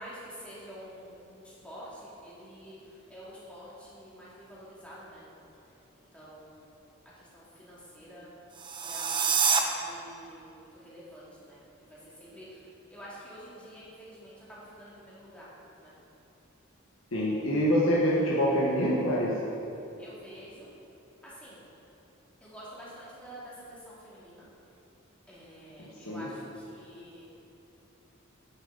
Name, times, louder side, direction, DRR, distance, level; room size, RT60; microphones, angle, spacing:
voice 1, 0.0-5.5 5.9-8.3 8.8-15.9 20.0-20.7 21.2-21.6 22.4-24.5 25.3-27.4, equal, 5° left, -8 dB, 2.3 m, -48 dB
sound 1, 8.5-9.6, right 6 dB, 25° right, 0.5 m, -26 dB
voice 2, 17.1-19.3 26.0-26.3, equal, 85° left, -6 dB, 1.3 m, -25 dB
9.0 x 8.6 x 4.0 m, 2.8 s
head